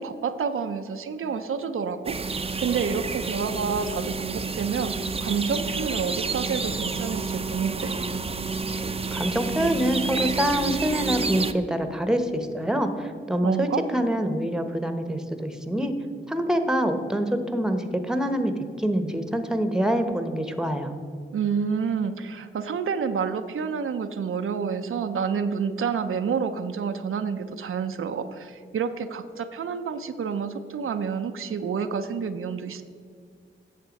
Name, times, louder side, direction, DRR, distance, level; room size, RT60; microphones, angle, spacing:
voice 1, 0.0-2.2 2.6-7.9 13.4-13.8 21.3-32.8, right 6 dB, 80° right, 8 dB, 0.5 m, -29 dB
sound 1, 2.0-11.5, right 4 dB, 30° right, 0.5 m, -29 dB
voice 2, 9.1-15.9 16.3-20.9, equal, 5° right, 8 dB, 0.9 m, -25 dB
8.9 x 6.7 x 5.2 m, 2.2 s
cardioid pair, 55°, 21 cm